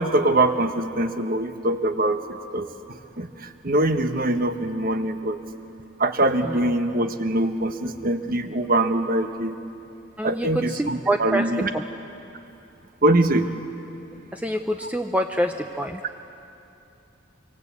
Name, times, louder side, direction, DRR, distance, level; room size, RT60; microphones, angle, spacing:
voice 1, 0.0-2.7 3.2-5.4 6.0-9.5 10.2-11.7 13.0-13.5 14.8-14.9, right 1 dB, 45° right, 8 dB, 1.2 m, -23 dB
voice 2, 10.8-11.8 14.3-16.0, right 1 dB, 5° right, 4 dB, 0.7 m, -26 dB
25.0 x 24.5 x 8.4 m, 2.8 s
head